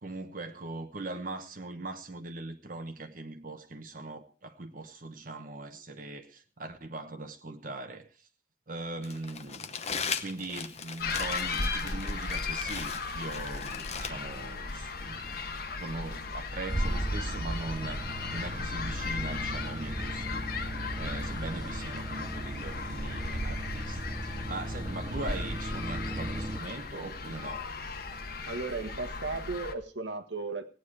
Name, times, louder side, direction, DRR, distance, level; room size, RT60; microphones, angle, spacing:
voice 1, 0.0-8.3 8.7-9.8 10.2-18.0 18.3-20.5 21.0-27.7, right 2 dB, 50° right, 1.1 m, -40 dB
Crumpling crinkling, 9.0-14.1, left 6 dB, 40° left, 0.9 m, -38 dB
sound 1, 11.0-29.7, left 4 dB, 55° left, 1.3 m, -36 dB
sound 2, 16.7-26.6, right 1 dB, 20° right, 0.5 m, -37 dB
voice 2, 28.5-30.7, right 3 dB, 85° right, 1.6 m, -35 dB
17.0 x 9.4 x 4.8 m
head